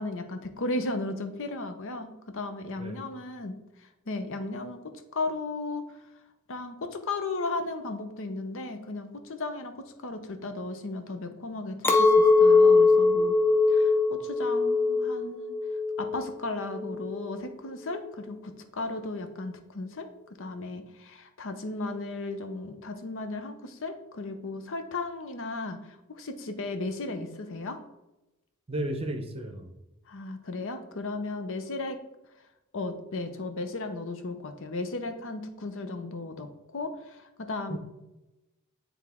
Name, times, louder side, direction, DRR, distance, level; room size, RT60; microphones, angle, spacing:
voice 1, 0.0-5.9 6.5-13.3 13.7-15.5 16.0-20.1 20.4-27.8 30.1-32.0 32.7-37.8, left 2 dB, 65° left, 8 dB, 0.8 m, -35 dB
Chink clink, 11.8-17.2, left 3 dB, 10° left, 0.6 m, -22 dB
voice 2, 28.7-29.7 37.7-37.8, right 1 dB, 25° right, 5 dB, 0.8 m, -33 dB
9.6 x 3.6 x 3.6 m, 0.95 s
head